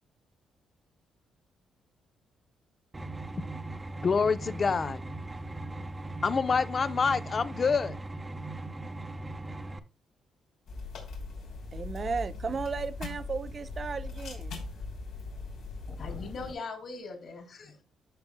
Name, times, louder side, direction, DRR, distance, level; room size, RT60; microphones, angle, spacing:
sound 1, 2.9-9.8, right 2 dB, 20° right, 0.9 m, -39 dB
voice 1, 4.0-5.0 6.2-8.0 15.9-16.0, left 5 dB, 40° left, 0.7 m, -26 dB
sound 2, 10.7-16.5, left 3 dB, 80° left, 3.4 m, -40 dB
voice 2, 11.7-14.6, right 5 dB, 40° right, 0.6 m, -35 dB
voice 3, 16.0-17.8, left 4 dB, 55° left, 3.9 m, -41 dB
14.5 x 5.2 x 2.2 m
cardioid pair, 90°, 0 cm